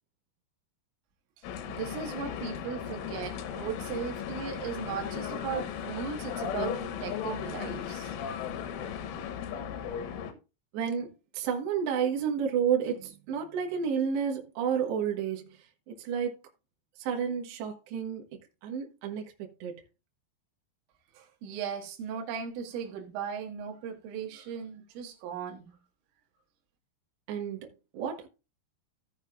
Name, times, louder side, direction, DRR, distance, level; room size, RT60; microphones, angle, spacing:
sound 1, 1.4-10.3, left 8 dB, 85° left, 3.6 m, -36 dB
voice 1, 1.7-8.2 21.2-25.8, right 7 dB, 85° right, 4.0 m, -37 dB
voice 2, 10.7-15.6 15.9-16.4 17.0-18.2 18.6-19.8 27.3-28.3, right 7 dB, 70° right, 3.4 m, -31 dB
16.5 x 6.2 x 2.5 m
omnidirectional pair, 5.6 m